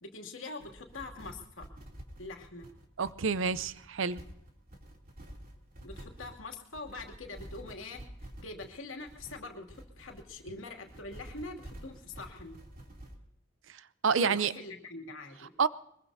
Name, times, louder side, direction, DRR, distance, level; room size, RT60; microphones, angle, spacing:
voice 1, 0.0-1.7 2.2-2.7 5.8-12.6 14.2-15.5, left 3 dB, 90° left, 2.6 m, -44 dB
sound 1, 0.6-13.2, right 1 dB, 45° right, 3.0 m, -49 dB
voice 2, 3.0-4.2 13.7-14.5 15.6-15.7, right 5 dB, 70° right, 0.6 m, -29 dB
23.0 x 21.5 x 2.8 m
head